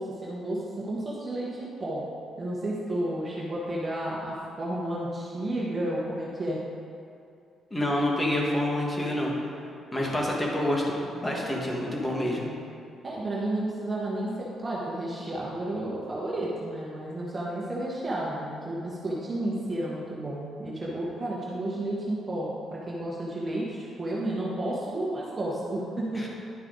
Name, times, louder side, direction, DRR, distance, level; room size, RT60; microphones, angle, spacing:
voice 1, 0.0-2.0 2.4-6.6 13.0-26.3, right 1 dB, 30° right, -5 dB, 1.5 m, -32 dB
voice 2, 7.7-9.3 9.9-12.5 26.1-26.3, left 1 dB, 15° left, -3 dB, 1.9 m, -27 dB
11.0 x 5.5 x 4.0 m, 2.6 s
cardioid pair, 90°, 0 cm